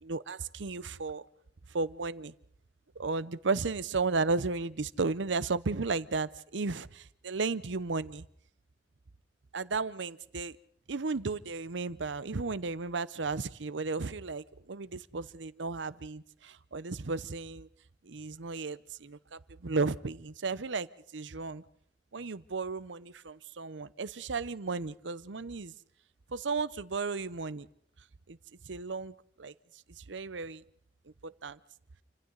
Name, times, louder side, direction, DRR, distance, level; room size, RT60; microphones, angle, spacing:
voice 1, 0.0-1.2 1.7-2.3 3.0-8.3 9.5-10.6 10.9-17.7 18.0-20.9 21.1-21.6 22.1-25.7 26.3-27.7 28.3-28.4 28.6-29.5 30.0-30.6 31.2-31.6, right 4 dB, 85° right, 17 dB, 0.8 m, -34 dB
28.5 x 26.0 x 4.0 m, 0.67 s
head